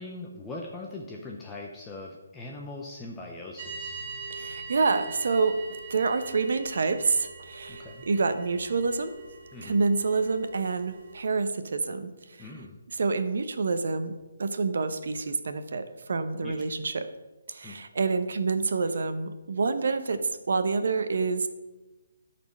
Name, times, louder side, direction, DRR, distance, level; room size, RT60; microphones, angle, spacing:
voice 1, 0.0-4.0 7.7-8.0 9.5-9.8 12.4-12.8 16.4-16.6 17.6-17.8, left 2 dB, 5° left, -2 dB, 0.5 m, -41 dB
sound 1, 3.6-11.2, right 3 dB, 30° right, 1.9 m, -42 dB
voice 2, 4.3-5.5 5.9-9.1 9.6-12.1 12.4-12.5 13.0-17.1 17.5-20.2 20.5-21.5, right 4 dB, 55° right, 10 dB, 0.8 m, -27 dB
11.5 x 4.4 x 6.3 m, 1.1 s
hypercardioid pair, 180°, 0 cm